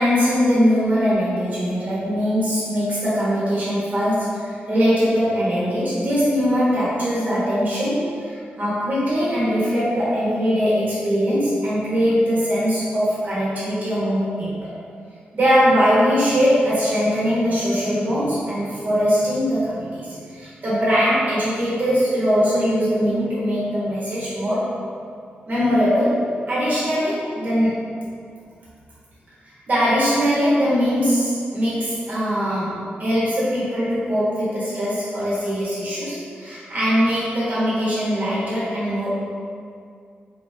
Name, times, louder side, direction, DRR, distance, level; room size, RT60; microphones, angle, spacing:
voice 1, 0.0-14.7 15.3-24.7 25.5-27.8 29.5-39.3, equal, 50° right, -10 dB, 1.3 m, -21 dB
4.2 x 3.6 x 2.8 m, 2.3 s
wide cardioid pair, 110°, 4 cm